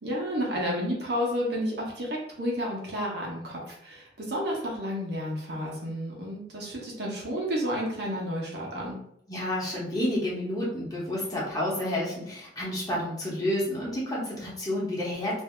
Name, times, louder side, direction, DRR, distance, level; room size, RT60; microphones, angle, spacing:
voice 1, 0.0-9.0, equal, 65° right, -3 dB, 1.1 m, -31 dB
voice 2, 9.3-15.4, left 1 dB, 20° left, -5 dB, 1.0 m, -30 dB
2.7 x 2.7 x 3.3 m, 0.71 s
head